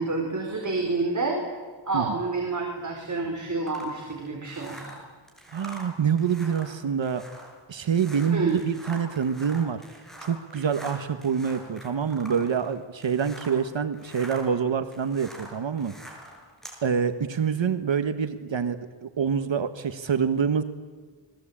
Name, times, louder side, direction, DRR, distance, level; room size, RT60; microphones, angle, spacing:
voice 1, 0.0-1.4 1.9-4.9 8.3-8.6, right 3 dB, 40° right, 1 dB, 4.4 m, -28 dB
sound 1, 3.7-13.7 13.9-16.8, equal, ahead, 6.7 m, -45 dB
voice 2, 5.5-7.2 7.7-9.8 10.2-15.9 16.8-20.6, right 7 dB, 70° right, 9 dB, 1.5 m, -26 dB
29.5 x 22.0 x 8.8 m, 1.5 s
wide cardioid pair, 155°, 47 cm